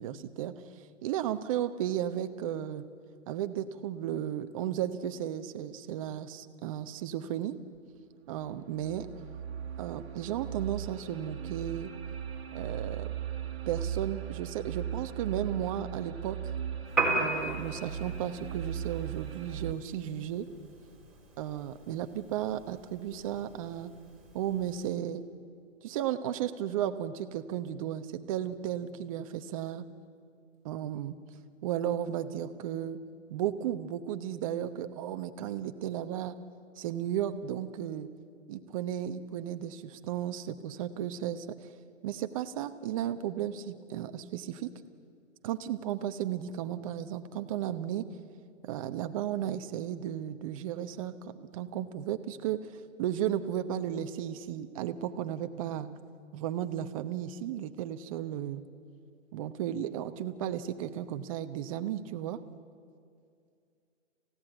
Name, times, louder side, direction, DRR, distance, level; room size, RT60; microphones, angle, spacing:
voice 1, 0.0-2.9 3.3-7.5 8.3-9.1 9.8-11.9 12.5-13.1 13.7-16.4 17.2-20.5 21.4-23.9 24.3-25.2 25.8-29.9 30.6-31.2 31.6-33.0 33.3-36.4 36.8-38.1 38.5-41.7 42.0-44.7 45.4-48.1 48.6-52.7 53.0-56.0 56.3-58.6 59.3-62.4, right 11 dB, 25° right, 9 dB, 0.9 m, -34 dB
sound 1, 7.7-7.8 8.4-19.7, right 9 dB, 55° right, 1.6 m, -38 dB
Piano, 16.9-24.9, right 3 dB, ahead, 3.9 m, -37 dB
27.5 x 16.0 x 9.0 m, 2.4 s
hypercardioid pair, 150°, 38 cm